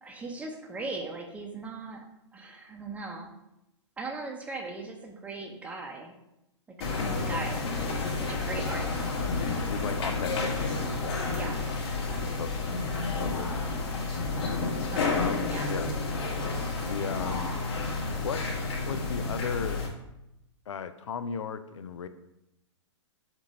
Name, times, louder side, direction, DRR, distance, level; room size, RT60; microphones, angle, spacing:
voice 1, 0.0-2.0 2.3-3.3 4.0-6.1 6.8-9.0 11.2-11.7 12.1-12.6 14.9-15.8 17.0-17.1, right 3 dB, 10° right, 2 dB, 0.8 m, -39 dB
sound 1, 6.8-19.9, left 3 dB, 55° left, 1.9 m, -30 dB
voice 2, 9.7-10.5 11.0-11.2 12.1-12.5 13.2-13.5 15.1-15.9 16.9-17.5 18.2-18.5 18.8-19.8 20.7-22.1, left 7 dB, 80° left, 11 dB, 0.5 m, -35 dB
7.3 x 2.6 x 5.3 m, 0.88 s
hypercardioid pair, 135°, 15 cm